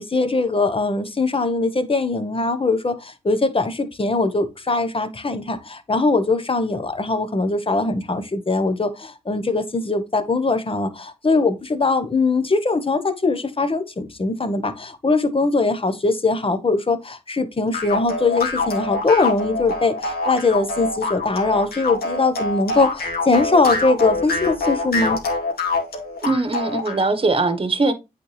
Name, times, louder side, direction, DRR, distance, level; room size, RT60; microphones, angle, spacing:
voice 1, 0.0-25.2, left 3 dB, 35° left, 1.2 m, -21 dB
sound 1, 17.7-27.0, left 3 dB, 70° left, 2.3 m, -25 dB
voice 2, 26.2-27.9, right 3 dB, 35° right, 1.2 m, -21 dB
8.3 x 4.3 x 3.3 m
cardioid pair, 50°, 17 cm